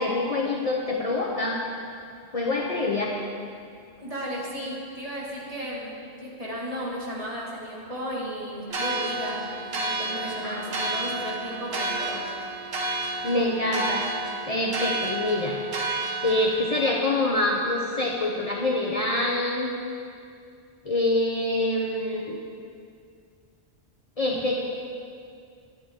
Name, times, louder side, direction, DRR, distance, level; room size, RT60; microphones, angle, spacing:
voice 1, 0.0-1.6 2.3-3.2 10.4-10.6 13.2-15.6 16.2-19.7 20.8-22.4 24.2-24.7, left 2 dB, 35° left, -3 dB, 0.8 m, -26 dB
voice 2, 4.0-9.4 9.7-12.2, equal, 35° right, -5 dB, 2.1 m, -34 dB
sound 1, 8.7-16.9, right 2 dB, 65° right, 1.2 m, -31 dB
11.5 x 10.0 x 3.7 m, 2.3 s
omnidirectional pair, 1.1 m